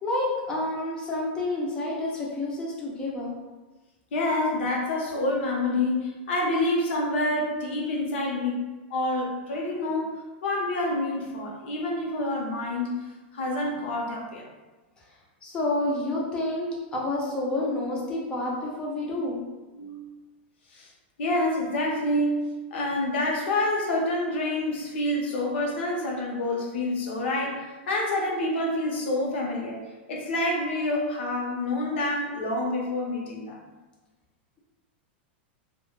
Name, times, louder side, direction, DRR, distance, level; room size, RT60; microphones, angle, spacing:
voice 1, 0.0-3.3 15.4-19.4, left 2 dB, 15° left, -3 dB, 0.4 m, -29 dB
voice 2, 4.1-13.0 13.3-14.4 19.7-20.2 20.7-20.9 21.2-29.8 30.1-33.6, left 1 dB, 75° left, -1 dB, 0.7 m, -27 dB
2.1 x 2.0 x 3.0 m, 1.2 s
supercardioid pair, 170°, 6 cm